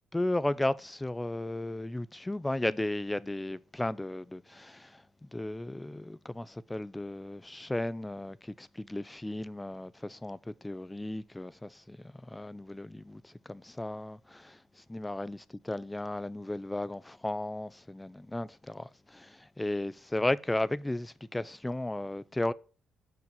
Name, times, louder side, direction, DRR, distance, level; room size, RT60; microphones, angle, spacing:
voice 1, 0.1-14.6 14.9-22.5, left 1 dB, 10° left, 0.4 m, -35 dB
6.2 x 4.7 x 5.4 m
cardioid pair, 90°, 0 cm